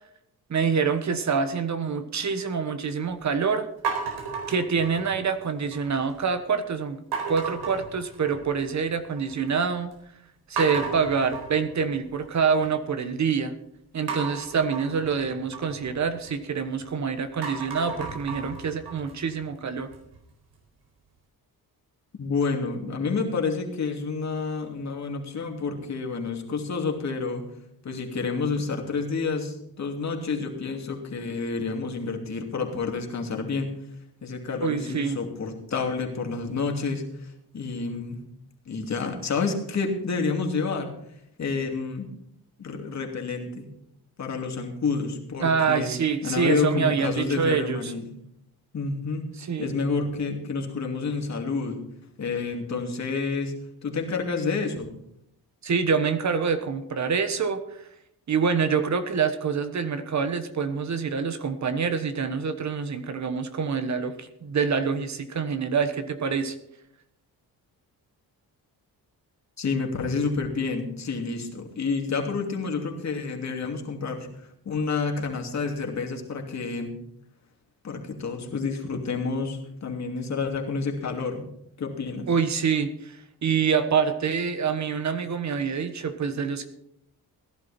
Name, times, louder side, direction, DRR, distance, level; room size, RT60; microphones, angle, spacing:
voice 1, 0.5-3.7 4.5-7.0 7.3-9.9 10.5-13.5 13.9-19.9 34.6-35.2 45.4-47.9 49.4-49.7 55.6-57.6 58.3-66.5 82.3-86.7, right 6 dB, 45° right, 9 dB, 1.3 m, -26 dB
sound 1, 3.8-5.3 5.7-6.2 7.1-8.6 9.0-9.5 9.9-10.0 10.6-12.7 14.1-16.9 17.3-20.2, right 5 dB, 90° right, 4.4 m, -35 dB
voice 2, 22.1-27.4 27.8-33.7 34.2-38.2 38.7-40.9 41.4-42.1 42.6-43.7 44.2-45.9 46.2-48.1 48.7-49.3 49.6-51.8 52.2-53.5 53.8-54.9 69.6-74.3 74.6-77.0 77.8-81.5 81.8-82.3, left 4 dB, 45° left, 2 dB, 2.8 m, -29 dB
16.5 x 11.0 x 4.3 m, 0.75 s
cardioid pair, 120°, 37 cm